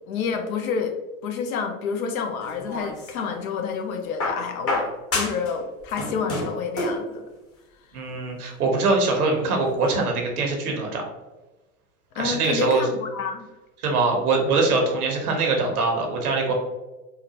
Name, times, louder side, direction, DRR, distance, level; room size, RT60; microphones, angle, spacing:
voice 1, 0.1-1.0 1.2-7.2 12.2-13.5, left 6 dB, 70° left, 5 dB, 0.7 m, -29 dB
sound 1, 2.4-3.4 4.2-5.5 5.8-7.1 8.2-8.3, left 1 dB, 30° left, 1.1 m, -29 dB
voice 2, 7.9-11.0 12.1-12.9 13.8-16.5, right 3 dB, 85° right, 2 dB, 0.9 m, -23 dB
3.8 x 2.1 x 2.8 m, 1.1 s
hypercardioid pair, 90°, 44 cm